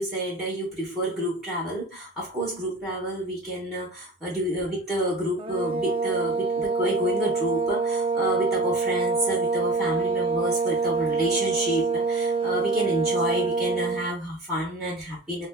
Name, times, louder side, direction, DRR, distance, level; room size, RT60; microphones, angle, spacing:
voice 1, 0.0-15.5, equal, ahead, 0.9 m, -29 dB
sound 1, 5.4-14.1, right 4 dB, 30° right, 0.3 m, -26 dB
5.0 x 2.2 x 2.2 m
head